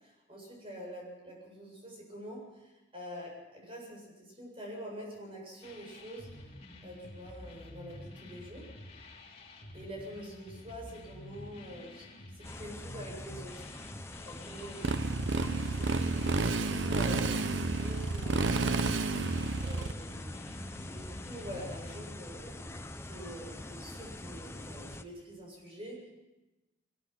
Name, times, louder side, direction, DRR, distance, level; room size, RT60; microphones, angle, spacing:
voice 1, 0.3-6.3 6.8-8.7 9.7-12.1 12.4-13.5 13.8-19.3 19.6-26.1, equal, 30° right, -1 dB, 7.9 m, -46 dB
sound 1, 5.6-22.0, left 1 dB, 35° left, 2.8 m, -49 dB
sound 2, 12.4-25.0, left 2 dB, 15° left, 0.8 m, -45 dB
Motorcycle, 14.8-19.9, right 3 dB, 90° right, 0.9 m, -30 dB
22.0 x 21.0 x 6.0 m, 1.0 s
head